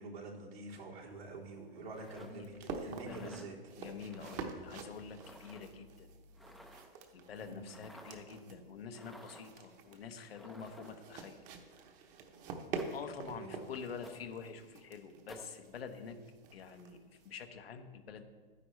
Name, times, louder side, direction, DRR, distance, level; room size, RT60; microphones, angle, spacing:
voice 1, 0.0-3.6 7.4-7.7 13.3-13.6, right 2 dB, 90° right, -5 dB, 3.3 m, -46 dB
sound 1, 1.1-17.4, right 5 dB, 25° right, 0.9 m, -48 dB
sound 2, 1.9-2.3 3.0-3.5 4.1-4.4 5.2-5.6 6.3-7.0 7.7-8.2 8.9-9.5 10.3-11.1 12.8-13.1 14.0-14.2 15.3-15.5, equal, ahead, 0.5 m, -54 dB
voice 2, 2.1-2.5 3.0-3.3 3.8-6.1 7.1-11.4 12.9-16.2 16.5-17.0 17.2-18.2, left 5 dB, 80° left, 6 dB, 1.2 m, -47 dB
12.0 x 9.7 x 3.3 m, 1.4 s
hypercardioid pair, 145°, 30 cm